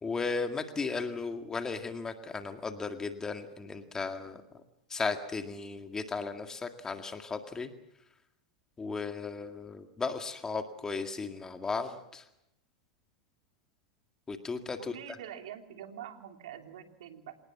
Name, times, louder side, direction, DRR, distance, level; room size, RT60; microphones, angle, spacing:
voice 1, 0.0-4.4 4.9-7.7 8.8-12.2 14.3-14.9, left 4 dB, 15° left, 7 dB, 2.0 m, -35 dB
voice 2, 14.8-17.4, right 10 dB, 75° right, 5 dB, 3.1 m, -45 dB
27.0 x 18.5 x 7.3 m, 0.85 s
hypercardioid pair, 115°, 3 cm